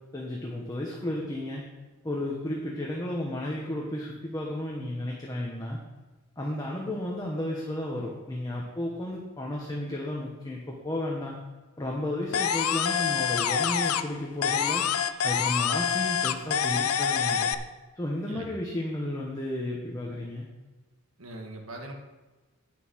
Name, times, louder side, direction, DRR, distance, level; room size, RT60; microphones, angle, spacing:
voice 1, 0.1-1.6 2.0-5.8 6.4-11.4 11.8-14.8 15.2-17.5 17.9-20.5, left 1 dB, 15° left, -2 dB, 1.2 m, -33 dB
sound 1, 12.3-14.2 14.4-17.5, left 8 dB, 85° left, 0.6 m, -26 dB
voice 2, 18.2-18.6 21.2-21.9, right 1 dB, 70° right, 2 dB, 1.7 m, -41 dB
9.7 x 7.0 x 6.2 m, 1.2 s
head